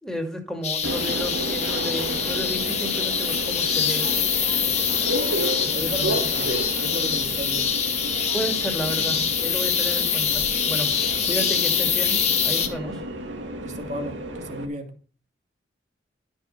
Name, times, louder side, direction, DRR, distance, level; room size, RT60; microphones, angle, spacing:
voice 1, 0.0-4.1 5.6-5.7 6.0-6.2 8.3-13.0, equal, 5° left, 3 dB, 2.4 m, -32 dB
sound 1, 0.6-12.7, left 7 dB, 35° left, 1.9 m, -24 dB
Subway metro underground, 0.8-14.7, right 1 dB, 80° right, 2.3 m, -32 dB
voice 2, 5.7-7.7 13.6-14.9, right 1 dB, 40° right, 5 dB, 2.3 m, -34 dB
12.5 x 6.4 x 6.6 m, 0.39 s
head